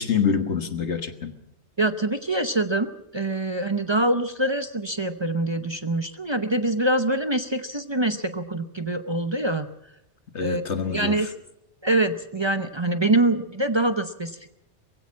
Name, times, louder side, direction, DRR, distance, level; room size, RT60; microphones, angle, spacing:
voice 1, 0.0-1.3 10.3-11.3, left 6 dB, 75° left, 9 dB, 1.8 m, -26 dB
voice 2, 1.8-9.7 10.4-10.6 10.9-11.3 11.8-14.6, right 2 dB, 25° right, 10 dB, 0.8 m, -24 dB
22.5 x 16.0 x 7.4 m, 0.82 s
omnidirectional pair, 1.2 m